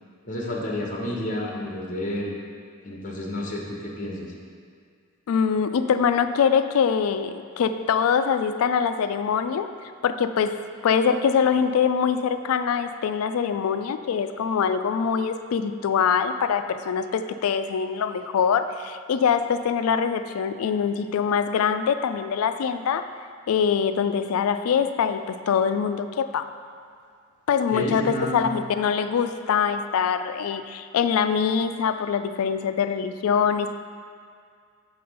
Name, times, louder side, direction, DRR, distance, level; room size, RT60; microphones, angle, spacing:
voice 1, 0.2-2.3 2.8-4.3 27.7-28.4, left 1 dB, 35° left, -2 dB, 1.1 m, -30 dB
voice 2, 5.3-9.7 10.0-23.0 23.5-26.5 27.5-33.7, left 7 dB, 70° left, 10 dB, 0.3 m, -23 dB
6.8 x 4.3 x 5.3 m, 2.2 s
head